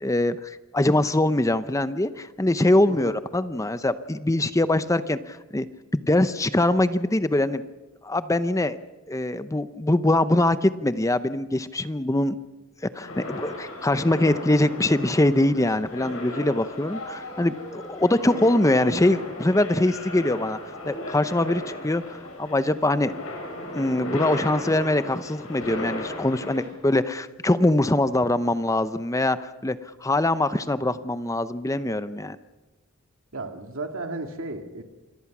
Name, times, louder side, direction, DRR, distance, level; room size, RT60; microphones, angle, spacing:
voice 1, 0.0-5.7 5.9-7.6 8.0-8.8 9.1-12.4 12.8-20.6 20.9-23.1 23.7-32.4, left 1 dB, 15° left, 13 dB, 0.7 m, -23 dB
voice 2, 2.9-3.2 33.3-34.8, right 2 dB, 80° right, 5 dB, 2.1 m, -34 dB
sound 1, 13.0-26.7, left 1 dB, 80° left, 7.6 m, -36 dB
27.5 x 22.0 x 6.1 m, 1.2 s
head